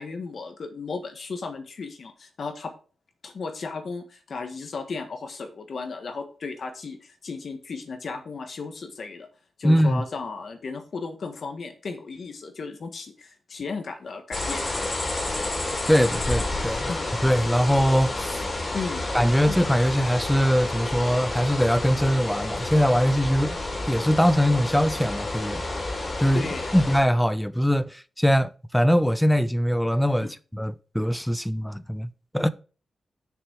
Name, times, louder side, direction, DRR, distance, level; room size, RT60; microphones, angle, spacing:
voice 1, 0.0-2.7 3.2-9.3 9.6-14.6 16.9-17.1 18.7-19.1 19.5-19.6 26.3-26.8 30.2-30.3, left 4 dB, 60° left, 1.4 m, -35 dB
voice 2, 9.6-10.0 15.9-16.9 17.2-18.4 19.1-23.6 23.9-25.6 26.2-32.1 32.3-32.5, equal, 5° left, 0.5 m, -22 dB
sound 1, 14.3-27.0, left 2 dB, 40° left, 2.9 m, -30 dB
6.9 x 6.0 x 4.7 m
cardioid pair, 85°, 0 cm